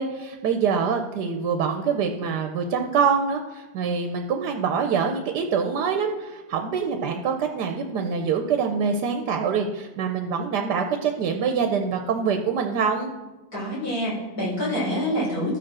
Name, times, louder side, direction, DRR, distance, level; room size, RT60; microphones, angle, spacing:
voice 1, 0.0-13.1, right 6 dB, 85° right, 5 dB, 1.3 m, -25 dB
voice 2, 13.5-15.6, equal, 65° left, -6 dB, 4.2 m, -26 dB
13.5 x 5.1 x 6.1 m, 1.2 s
omnidirectional pair, 1.8 m